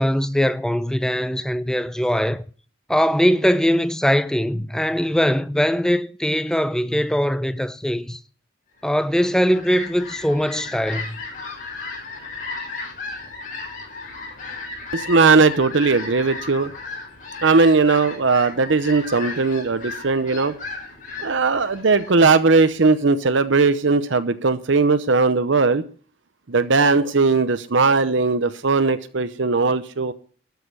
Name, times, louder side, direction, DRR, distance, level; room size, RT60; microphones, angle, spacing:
voice 1, 0.0-2.4 2.9-8.2 8.8-11.2, equal, 5° left, 0.5 m, -21 dB
Fowl, 9.1-23.0, left 3 dB, 40° left, 6.3 m, -35 dB
voice 2, 14.9-16.7 17.4-20.5 21.2-25.8 26.5-30.1, right 4 dB, 70° right, 0.8 m, -18 dB
12.5 x 6.7 x 8.1 m
head